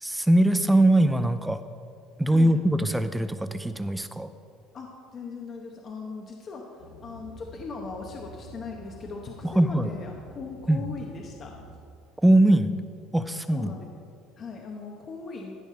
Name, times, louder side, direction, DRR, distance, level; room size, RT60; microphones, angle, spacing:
voice 1, 0.0-1.6 2.2-4.3 9.4-9.9 10.7-10.8 12.2-12.7 13.1-13.7, right 1 dB, 5° right, 11 dB, 0.4 m, -21 dB
voice 2, 4.7-11.5 13.5-13.9 14.4-15.5, left 4 dB, 35° left, 1 dB, 0.9 m, -39 dB
sound 1, 6.8-11.8, right 1 dB, 60° left, 2.1 m, -48 dB
13.0 x 4.9 x 6.6 m, 2.4 s
cardioid pair, 145°, 0 cm